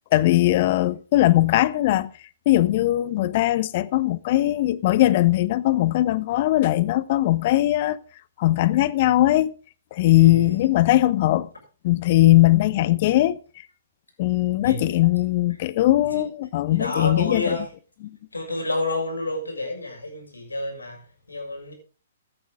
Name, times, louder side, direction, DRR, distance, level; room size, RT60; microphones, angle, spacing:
voice 1, 0.1-2.1 2.5-8.0 8.4-9.5 9.9-11.5 11.8-13.4 14.2-17.5, left 15 dB, 45° left, 0.8 m, -20 dB
voice 2, 10.0-10.5 14.6-14.8 16.1-16.3 16.7-17.7 18.3-21.7, left 2 dB, 85° left, 6.7 m, -29 dB
14.5 x 10.5 x 3.6 m
figure-of-eight pair, 125°, 0 cm